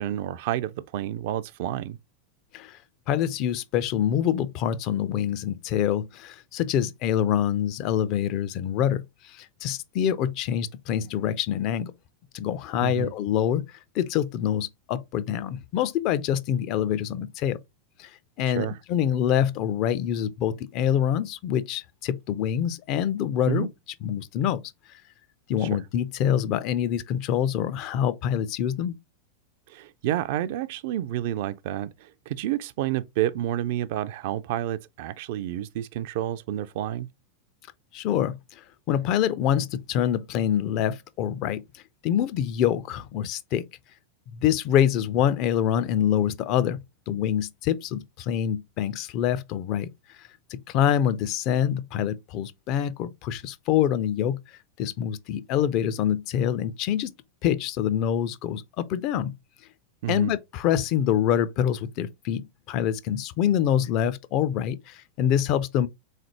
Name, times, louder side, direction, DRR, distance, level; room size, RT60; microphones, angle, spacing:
voice 1, 0.0-2.0 12.8-13.1 18.6-18.7 23.5-23.7 25.6-25.7 29.7-37.1 60.0-60.3, right 12 dB, 50° right, 0.3 m, -29 dB
voice 2, 3.1-11.9 12.3-17.6 18.0-18.1 18.4-23.7 24.0-24.6 25.5-29.0 37.9-43.6 44.3-46.8 47.1-57.1 57.4-59.3 60.1-62.4 62.7-65.9, left 10 dB, 40° left, 0.4 m, -26 dB
3.7 x 3.2 x 2.9 m
figure-of-eight pair, 90°, 0 cm